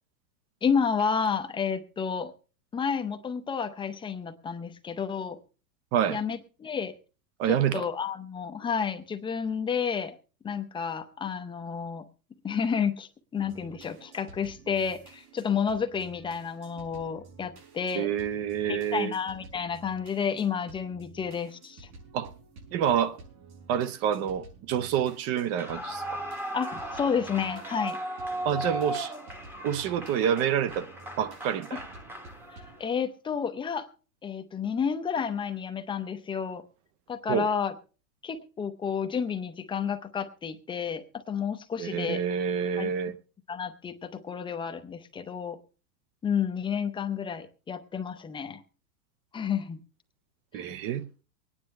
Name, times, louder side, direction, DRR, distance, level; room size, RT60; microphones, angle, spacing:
voice 1, 0.6-2.3 2.7-5.4 6.1-6.9 7.5-10.2 10.4-12.1 12.4-18.1 18.7-21.9 26.5-28.0 32.8-33.9 34.2-36.6 37.1-37.7 38.2-42.2 42.8-42.9 43.5-45.6 46.2-48.6 49.3-49.8 50.5-50.6, left 6 dB, 10° left, 0.6 m, -31 dB
voice 2, 7.4-7.9 17.9-19.1 22.1-22.3 22.7-23.2 23.7-26.2 28.4-29.1 29.6-30.9 31.2-31.8 37.3-37.5 41.8-43.2 50.5-51.1, right 9 dB, 35° right, 0.7 m, -27 dB
sound 1, 13.4-32.8, right 4 dB, 85° right, 6.2 m, -52 dB
Clapping / Cheering / Applause, 25.5-32.9, right 1 dB, 5° right, 1.0 m, -37 dB
24.0 x 9.8 x 3.2 m
supercardioid pair, 140°, 44 cm